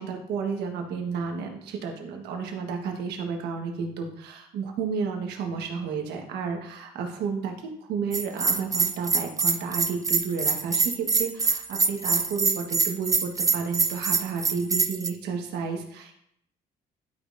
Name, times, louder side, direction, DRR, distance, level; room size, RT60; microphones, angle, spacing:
voice 1, 0.0-16.1, right 5 dB, 80° right, 2 dB, 1.4 m, -32 dB
Bell, 8.1-15.1, right 4 dB, 20° right, 0.5 m, -24 dB
11.5 x 5.0 x 2.6 m, 0.71 s
cardioid pair, 110°, 17 cm